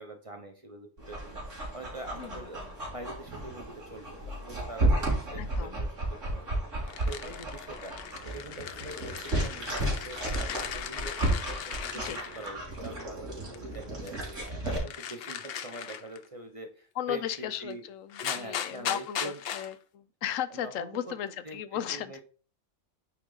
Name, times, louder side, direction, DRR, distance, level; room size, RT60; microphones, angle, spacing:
voice 1, 0.0-5.9 6.3-8.0 8.2-17.8 18.2-19.4 20.5-21.1 21.4-22.2, right 2 dB, 30° right, 4 dB, 0.8 m, -44 dB
Dog, 1.0-14.8, right 1 dB, 70° right, 3.1 m, -33 dB
voice 2, 5.4-5.8 12.0-12.2 17.0-22.1, left 10 dB, 85° left, 14 dB, 1.0 m, -36 dB
sound 1, 6.9-12.9 13.5-16.3 17.7-17.8 18.1-19.7, left 9 dB, 60° left, 0.7 m, -38 dB
8.8 x 3.8 x 3.9 m, 0.39 s
omnidirectional pair, 1.3 m